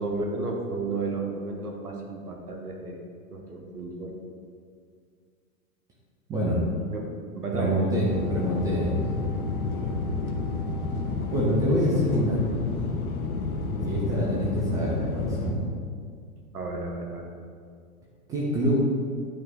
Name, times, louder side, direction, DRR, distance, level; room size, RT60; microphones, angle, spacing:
voice 1, 0.0-3.0 3.3-4.1 6.9-7.8 16.5-17.3, right 3 dB, 85° right, 1 dB, 1.2 m, -32 dB
voice 2, 7.5-9.0 11.3-12.5 13.8-15.6 18.3-18.8, equal, 10° right, -5 dB, 0.3 m, -26 dB
sound 1, 8.1-15.5, left 3 dB, 75° left, 0.9 m, -30 dB
8.9 x 4.0 x 3.5 m, 2.1 s
figure-of-eight pair, 100°, 44 cm